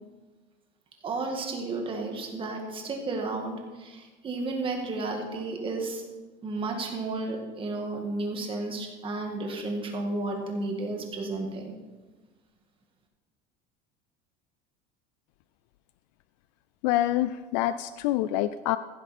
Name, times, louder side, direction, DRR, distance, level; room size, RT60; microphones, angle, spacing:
voice 1, 1.0-6.0 6.4-11.7, right 2 dB, 25° right, 2 dB, 1.8 m, -32 dB
voice 2, 16.8-18.8, left 14 dB, 90° left, 13 dB, 0.4 m, -26 dB
15.5 x 7.5 x 4.2 m, 1.2 s
cardioid pair, 155°, 21 cm